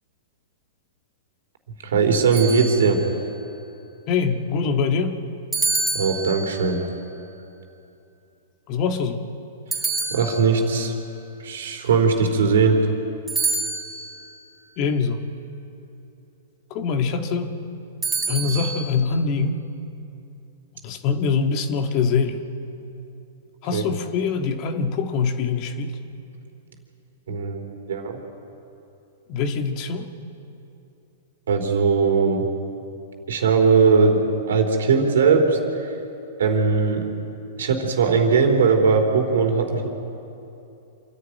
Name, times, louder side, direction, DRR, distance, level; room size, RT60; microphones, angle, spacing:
voice 1, 1.8-3.0 5.9-6.8 10.1-10.9 11.4-12.8 23.7-23.8 27.3-27.6 27.9-28.2 31.5-32.5 33.3-35.6 36.4-37.0 37.6-39.9, right 5 dB, 75° right, 3 dB, 3.4 m, -19 dB
sound 1, 2.3-3.2 5.5-6.8 9.7-10.8 13.3-14.2 18.0-18.8, right 4 dB, 10° right, 4.2 m, -27 dB
voice 2, 4.1-5.2 8.7-9.2 14.8-15.2 16.7-17.6 18.3-19.6 20.8-22.4 23.6-26.0 29.3-30.1, left 5 dB, 45° left, 6 dB, 1.8 m, -23 dB
26.5 x 11.5 x 9.4 m, 2.8 s
hypercardioid pair, 115°, 0 cm